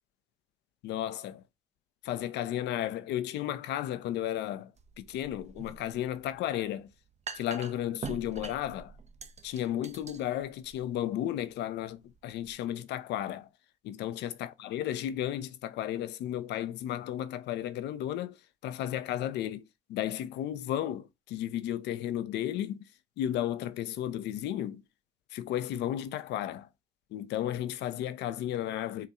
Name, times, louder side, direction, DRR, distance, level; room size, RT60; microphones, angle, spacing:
voice 1, 0.8-1.4 2.0-4.7 5.0-6.9 7.3-8.9 9.4-13.5 13.8-18.4 18.6-19.6 19.9-22.8 23.2-24.8 25.3-26.7 27.1-29.1, left 11 dB, 80° left, 0.4 m, -33 dB
sound 1, 4.8-12.5, right 5 dB, 40° right, 0.5 m, -46 dB
4.2 x 2.3 x 2.3 m
hypercardioid pair, 45°, 17 cm